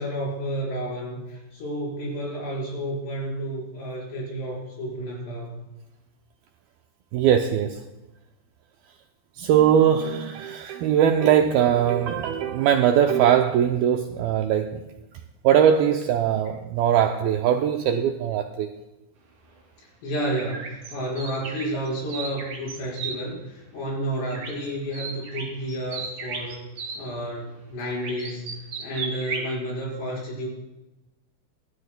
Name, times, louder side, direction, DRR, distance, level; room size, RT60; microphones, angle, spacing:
voice 1, 0.0-5.7 20.0-26.7 27.0-30.5, right 1 dB, 75° left, -4 dB, 7.1 m, -31 dB
voice 2, 7.1-7.8 9.4-14.8 15.4-18.7, right 9 dB, 80° right, 4 dB, 2.2 m, -21 dB
sound 1, 20.3-23.2 24.3-24.7 24.9-27.0 28.0-29.5, right 5 dB, 50° right, 4.1 m, -34 dB
25.5 x 13.0 x 2.3 m, 1.0 s
omnidirectional pair, 4.9 m